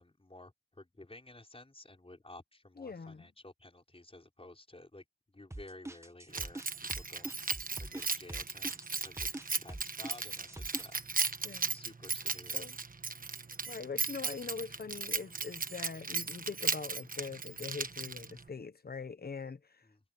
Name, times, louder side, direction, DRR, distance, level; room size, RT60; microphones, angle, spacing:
voice 1, 0.0-7.5 7.8-9.3 9.6-11.1 11.7-12.7 19.8-20.0, left 2 dB, 35° left, 5.2 m, -53 dB
voice 2, 2.8-3.3 7.8-8.0 11.4-11.8 12.5-12.8 13.7-19.9, left 5 dB, 80° left, 1.0 m, -43 dB
sound 1, 5.5-10.9, right 1 dB, 15° right, 1.2 m, -44 dB
Keys jangling, 6.3-18.5, right 4 dB, 60° right, 1.3 m, -36 dB
wide cardioid pair, 55°, 16 cm